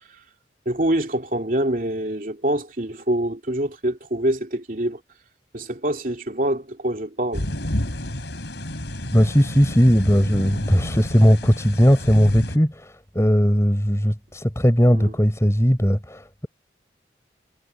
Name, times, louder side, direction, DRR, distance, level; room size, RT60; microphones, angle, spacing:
voice 1, 0.6-5.0 5.5-7.5 14.9-15.2, right 1 dB, 50° right, 2.9 m, -25 dB
sound 1, 7.3-12.6, left 1 dB, 80° left, 4.0 m, -30 dB
voice 2, 9.1-16.5, equal, 15° left, 4.4 m, -18 dB
head